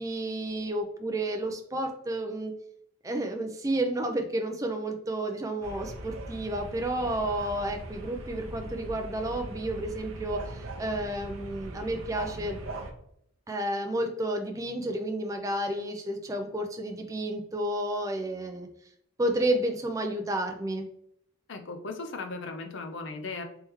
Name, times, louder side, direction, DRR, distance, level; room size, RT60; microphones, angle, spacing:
voice 1, 0.0-2.5 3.0-12.6 13.5-18.7 19.2-20.9, right 1 dB, 15° right, 4 dB, 0.4 m, -31 dB
sound 1, 5.6-12.9, right 2 dB, 70° right, 0.6 m, -40 dB
voice 2, 21.5-23.4, left 3 dB, 55° left, 5 dB, 0.5 m, -37 dB
3.4 x 3.2 x 3.0 m, 0.71 s
head